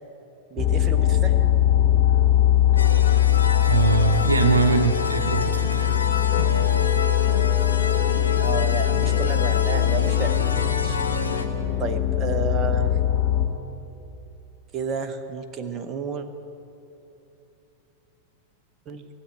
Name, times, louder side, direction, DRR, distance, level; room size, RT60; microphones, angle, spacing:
voice 1, 0.5-1.4 8.4-10.3 10.6-11.0 11.8-13.0 14.7-16.3 18.9-19.1, right 5 dB, 30° right, 8 dB, 0.9 m, -31 dB
sound 1, 0.6-13.5, left 11 dB, 30° left, 1.5 m, -21 dB
sound 2, 2.8-11.4, left 4 dB, 75° left, 1.0 m, -30 dB
voice 2, 3.6-6.0 6.3-6.5, right 4 dB, 80° right, 7 dB, 0.9 m, -22 dB
17.0 x 7.8 x 10.0 m, 2.9 s
figure-of-eight pair, 90°, 0 cm